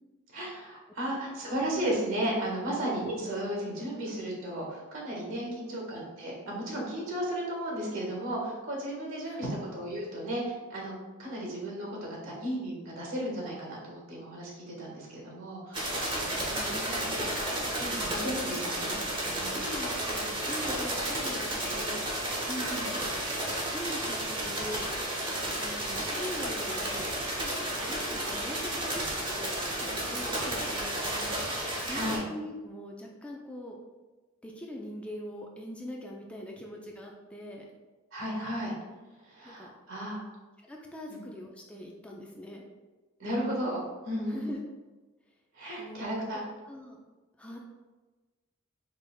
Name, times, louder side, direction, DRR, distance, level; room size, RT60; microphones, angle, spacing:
voice 1, 0.3-10.9 11.2-17.0 17.8-18.9 19.3-19.6 22.5-22.9 31.9-32.2 38.1-38.7 39.3-40.2 41.1-41.2 43.2-44.5 45.5-46.4, right 1 dB, 70° right, -3 dB, 1.5 m, -34 dB
voice 2, 5.4-5.8 9.2-9.5 16.6-17.2 17.9-18.1 19.5-22.0 23.1-23.3 23.7-24.9 25.6-27.0 27.4-27.5 27.8-31.4 31.8-33.8 34.4-37.7 39.4-39.7 40.6-42.6 44.3-44.6 45.8-46.3 46.7-47.0 47.4-47.6, equal, 5° left, -1 dB, 0.4 m, -42 dB
sound 1, 15.7-32.2, right 1 dB, 25° right, 1.0 m, -32 dB
5.0 x 3.3 x 2.2 m, 1.2 s
head